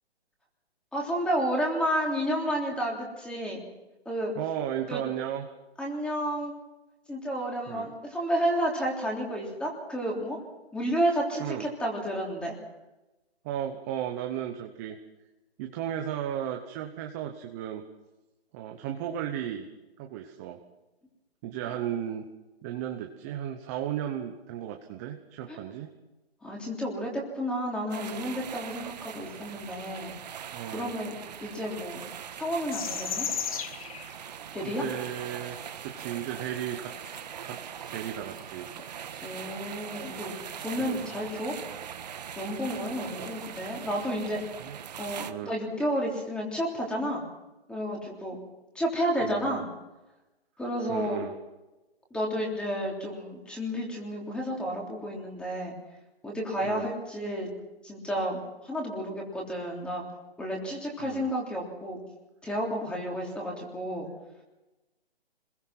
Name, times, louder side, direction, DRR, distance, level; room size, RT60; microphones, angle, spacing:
voice 1, 0.9-3.6 4.0-4.3 4.9-5.0 5.8-6.5 7.1-10.4 10.7-12.6 25.5-25.6 26.4-30.1 30.7-31.1 31.4-32.0 32.4-33.3 34.5-34.8 39.2-41.5 42.4-44.4 45.0-47.2 47.7-48.4 48.7-49.6 50.6-51.2 52.1-55.7 56.2-57.5 57.8-60.0 60.4-62.0 62.4-64.1, equal, 5° left, -1 dB, 3.4 m, -31 dB
voice 2, 4.4-5.4 7.7-7.9 11.4-11.7 13.4-15.0 15.6-17.8 18.5-19.7 20.0-20.6 21.4-22.2 22.6-25.9 30.5-30.9 34.6-36.9 37.4-37.6 37.9-38.7 40.8-41.1 43.2-43.3 44.6-44.8 45.3-45.5 49.2-49.6 50.9-51.3 56.6-56.9 61.0-61.3, right 10 dB, 15° right, 4 dB, 1.0 m, -35 dB
sound 1, 27.9-45.3, right 8 dB, 40° right, 1.5 m, -41 dB
sound 2, 32.7-34.2 35.5-35.6 36.5-36.7 37.0-37.2 38.8-38.9 39.4-39.5 41.0-41.1 43.6-43.7, left 8 dB, 35° left, 1.3 m, -34 dB
26.0 x 21.5 x 6.1 m, 1.0 s
hypercardioid pair, 160°, 32 cm